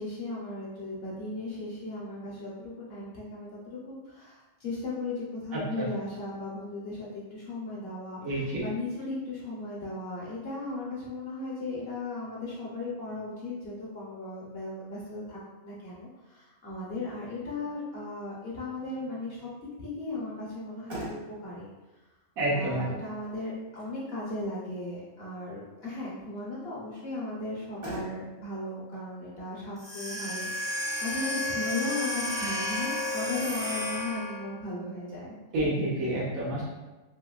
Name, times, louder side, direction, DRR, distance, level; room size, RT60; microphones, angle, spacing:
voice 1, 0.0-19.5 19.8-21.7 22.5-35.3, left 2 dB, 55° left, -6 dB, 0.7 m, -36 dB
voice 2, 5.5-5.9 8.2-8.6 22.4-22.9 35.5-36.6, right 1 dB, 80° right, -6 dB, 1.1 m, -29 dB
Motor vehicle (road), 20.7-33.4, right 1 dB, 35° right, 0.5 m, -48 dB
sound 1, 29.8-34.5, left 1 dB, 55° right, 1.0 m, -32 dB
2.8 x 2.7 x 2.3 m, 1.2 s
omnidirectional pair, 1.5 m